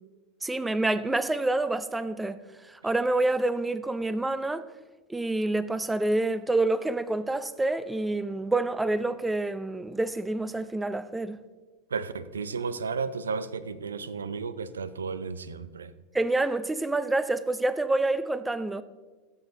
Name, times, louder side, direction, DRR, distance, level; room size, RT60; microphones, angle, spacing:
voice 1, 0.4-2.4 2.6-4.7 5.1-11.4 16.1-18.8, right 2 dB, 10° right, 0.6 m, -27 dB
voice 2, 11.9-15.9, right 5 dB, 85° right, 0.5 m, -33 dB
14.5 x 8.1 x 3.9 m
hypercardioid pair, 90°, 0 cm